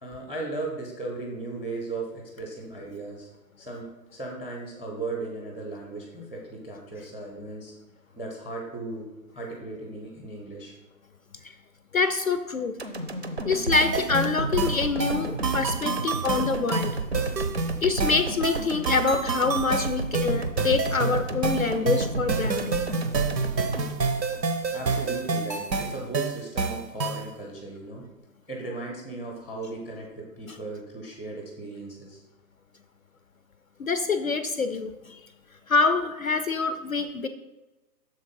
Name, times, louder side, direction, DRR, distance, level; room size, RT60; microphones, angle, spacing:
voice 1, 0.0-3.3 3.6-7.7 8.2-10.7 24.7-28.1 28.5-32.2, right 3 dB, 10° left, 0 dB, 0.7 m, -36 dB
voice 2, 11.9-12.7 13.4-16.9 17.8-22.8 33.8-35.3 35.7-37.3, left 4 dB, 55° left, 10 dB, 0.5 m, -26 dB
sound 1, 12.8-25.0 25.4-25.5, right 2 dB, 45° right, 0.5 m, -32 dB
sound 2, 13.7-27.3, right 4 dB, 90° right, 0.7 m, -29 dB
6.6 x 3.7 x 5.4 m, 1.1 s
figure-of-eight pair, 140°, 49 cm